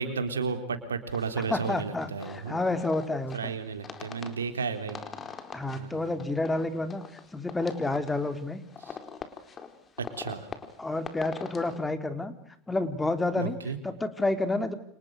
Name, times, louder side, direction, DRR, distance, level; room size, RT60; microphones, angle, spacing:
voice 1, 0.0-2.6 3.3-5.0 5.7-6.1 8.8-9.0 10.0-10.5 13.4-13.8, right 5 dB, 90° right, 8 dB, 3.6 m, -33 dB
sound 1, 1.1-11.8, left 5 dB, 30° left, 4.4 m, -44 dB
voice 2, 1.5-3.5 5.5-7.0 7.3-8.6 10.8-12.3 12.7-13.6 13.8-14.7, left 2 dB, 15° left, 10 dB, 3.6 m, -29 dB
30.0 x 28.5 x 6.5 m, 0.64 s
hypercardioid pair, 85°, 0 cm